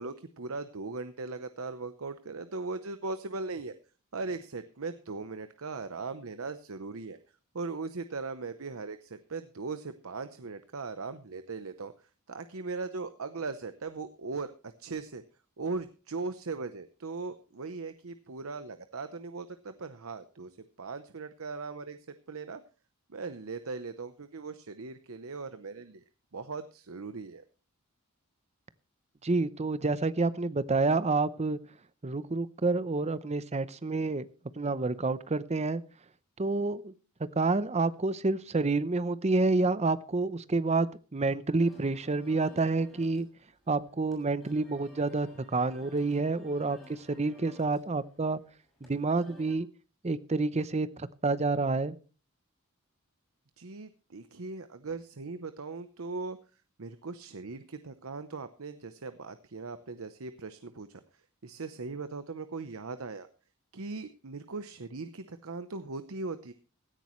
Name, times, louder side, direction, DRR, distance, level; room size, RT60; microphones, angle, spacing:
voice 1, 0.0-3.7 4.1-7.2 7.5-11.9 12.3-14.5 14.8-15.2 15.6-20.5 20.8-22.0 22.3-22.6 23.1-26.0 26.3-27.4 53.6-56.4 56.8-60.9 61.4-63.3 63.7-66.5, right 3 dB, 70° right, 10 dB, 0.8 m, -39 dB
voice 2, 29.2-31.6 32.0-34.3 34.6-35.8 36.4-36.9 37.4-43.3 43.7-48.4 48.9-49.7 50.0-52.0, right 3 dB, 30° right, 14 dB, 0.7 m, -28 dB
sound 1, 41.6-49.5, left 1 dB, ahead, 6.3 m, -56 dB
16.5 x 13.5 x 3.1 m, 0.36 s
head